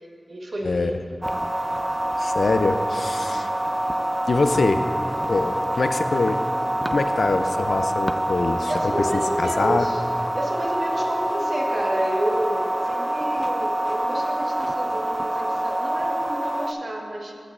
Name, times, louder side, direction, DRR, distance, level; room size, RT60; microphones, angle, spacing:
voice 1, 0.3-1.0 8.7-10.0 10.3-17.3, right 1 dB, 65° right, -1 dB, 1.2 m, -30 dB
sound 1, 1.2-16.7, right 1 dB, 15° right, 0.4 m, -26 dB
voice 2, 2.2-3.5 4.3-4.8 5.3-6.4 6.9-9.9, left 3 dB, 75° left, 8 dB, 0.4 m, -24 dB
14.5 x 5.9 x 2.4 m, 2.4 s
cardioid pair, 45°, 0 cm